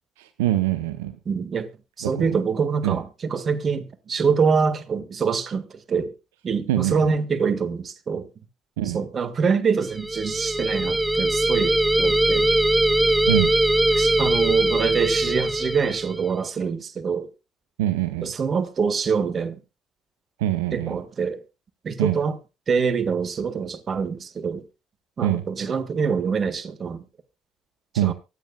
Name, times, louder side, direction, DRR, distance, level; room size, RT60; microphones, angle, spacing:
voice 1, 0.2-1.2 2.0-2.4 2.8-3.0 6.7-7.1 8.8-9.0 13.0-13.5 17.8-18.3 20.4-21.0 22.0-22.2 25.2-25.5 27.9-28.1, right 13 dB, 90° right, 0.8 m, -24 dB
voice 2, 1.2-1.7 2.0-6.1 6.4-8.3 8.9-12.5 14.0-17.3 18.2-19.6 20.7-21.4 21.8-22.3 22.7-24.6 25.2-27.0 28.0-28.1, right 5 dB, 45° right, 1.7 m, -25 dB
sound 1, 9.9-16.3, right 1 dB, 15° right, 0.9 m, -21 dB
24.0 x 9.3 x 2.3 m
hypercardioid pair, 55°, 0 cm